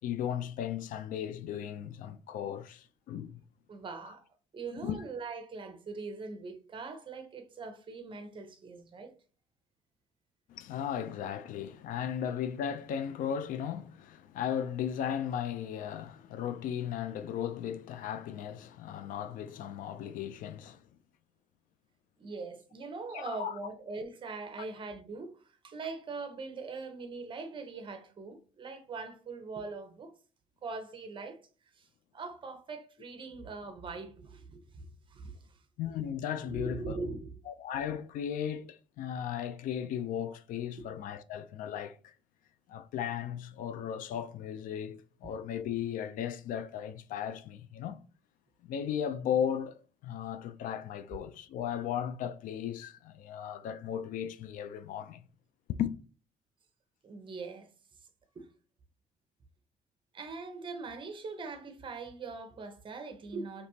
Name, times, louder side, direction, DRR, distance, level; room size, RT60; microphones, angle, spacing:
voice 1, 0.0-3.4 4.8-5.0 10.5-20.8 23.1-23.5 35.8-37.0 37.5-42.1 42.7-48.0 48.6-55.2 55.7-55.9, left 9 dB, 75° left, 0.5 m, -36 dB
voice 2, 3.7-4.2 4.5-9.1 22.2-30.1 30.6-31.4 31.7-31.9 32.1-35.6 36.4-37.4 40.8-40.9 57.0-57.7 58.3-58.5 60.1-63.7, right 4 dB, 35° right, 0.8 m, -42 dB
5.1 x 3.0 x 2.8 m
cardioid pair, 115°, 14 cm